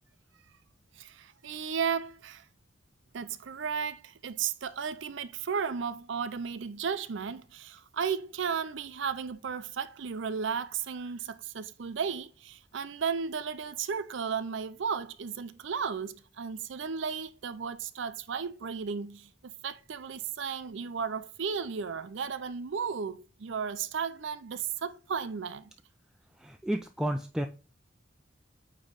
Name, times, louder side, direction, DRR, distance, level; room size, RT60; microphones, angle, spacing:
voice 1, 1.0-2.4 3.1-25.7, right 6 dB, 65° right, 0.5 m, -34 dB
voice 2, 26.4-27.5, right 1 dB, 5° right, 0.3 m, -31 dB
8.8 x 3.1 x 3.8 m
head